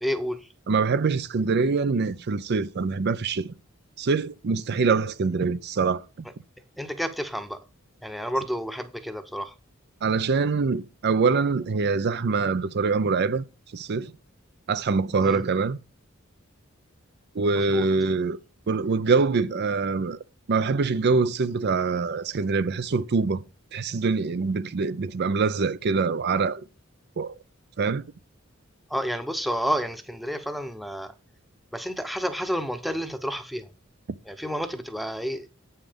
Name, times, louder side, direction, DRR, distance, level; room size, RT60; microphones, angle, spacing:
voice 1, 0.0-0.5 6.8-7.6 8.0-9.5 15.2-15.4 17.5-17.9 28.9-31.1 31.7-33.7 34.2-35.5, equal, ahead, 0.8 m, -30 dB
voice 2, 0.7-3.5 4.0-6.0 10.0-13.4 13.7-14.1 14.7-15.8 17.3-18.4 18.7-20.2 20.5-23.4 23.7-26.6 27.2-27.3 27.8-28.0, right 4 dB, 55° right, 0.5 m, -24 dB
8.0 x 5.6 x 5.1 m
head